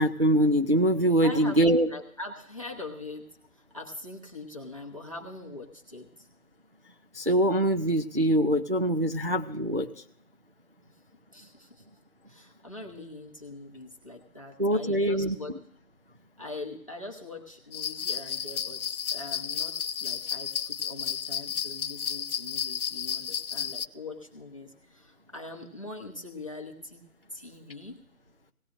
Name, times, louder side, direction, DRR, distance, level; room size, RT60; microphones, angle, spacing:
voice 1, 0.0-1.9 7.1-9.9 14.6-15.4, right 1 dB, 45° right, 5 dB, 0.4 m, -23 dB
voice 2, 1.2-3.3 3.5-6.3 11.3-11.8 12.3-15.6 16.4-27.0 27.3-28.1, left 2 dB, 25° left, 2 dB, 0.9 m, -42 dB
sound 1, 17.7-23.9, left 8 dB, 70° left, 0.6 m, -32 dB
18.0 x 15.0 x 2.5 m, 0.71 s
figure-of-eight pair, 170°, 44 cm